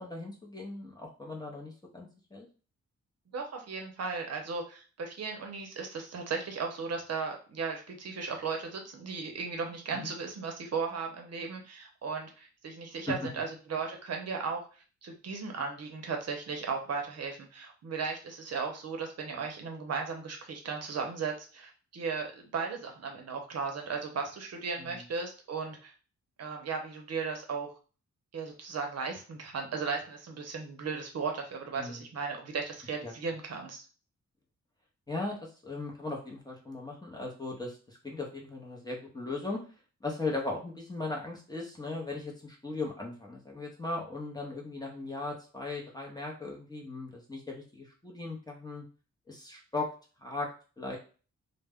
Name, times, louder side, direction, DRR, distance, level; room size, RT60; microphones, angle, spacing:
voice 1, 0.0-2.5 9.9-10.1 13.1-13.2 24.8-25.0 31.8-32.0 33.0-33.1 35.1-39.6 40.0-48.8 49.3-49.9 50.2-50.5 50.8-51.0, left 3 dB, 15° left, -1 dB, 0.7 m, -38 dB
voice 2, 3.3-14.6 15.0-25.9 26.4-27.7 28.3-33.8, right 5 dB, 60° right, 3 dB, 0.6 m, -36 dB
2.2 x 2.1 x 3.4 m, 0.36 s
cardioid pair, 100°, 30 cm